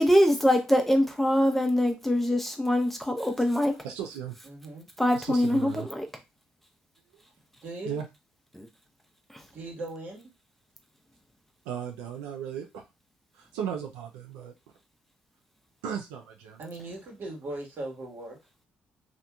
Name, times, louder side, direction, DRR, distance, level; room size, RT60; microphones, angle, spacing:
voice 1, 0.0-3.8 5.0-6.1 8.5-8.7, equal, 5° left, 0.6 m, -23 dB
voice 2, 3.8-4.4 5.1-5.9 7.9-8.1 11.6-12.8 13.3-14.5 15.8-16.6, right 8 dB, 85° right, 0.4 m, -36 dB
voice 3, 4.4-4.9 7.6-8.0 9.5-10.3 16.6-18.4, right 2 dB, 60° right, 1.3 m, -39 dB
2.7 x 2.5 x 2.3 m
hypercardioid pair, 50°, 4 cm